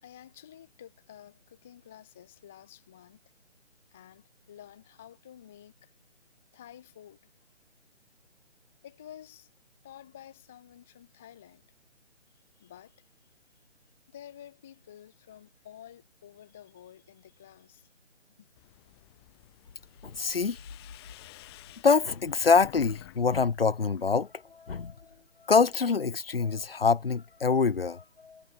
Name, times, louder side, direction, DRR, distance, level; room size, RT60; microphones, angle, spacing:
voice 1, 0.0-3.2 3.9-5.9 6.5-7.2 8.8-9.5 9.8-11.6 12.6-13.1 14.1-17.9 18.4-18.5, left 10 dB, ahead, 0.6 m, -51 dB
sound 1, 18.6-23.2 23.5-24.2, left 17 dB, 20° left, 5.5 m, -51 dB
voice 2, 20.0-20.6 21.8-24.9 25.5-28.4, left 5 dB, 50° left, 1.5 m, -25 dB
figure-of-eight pair, 145°, 36 cm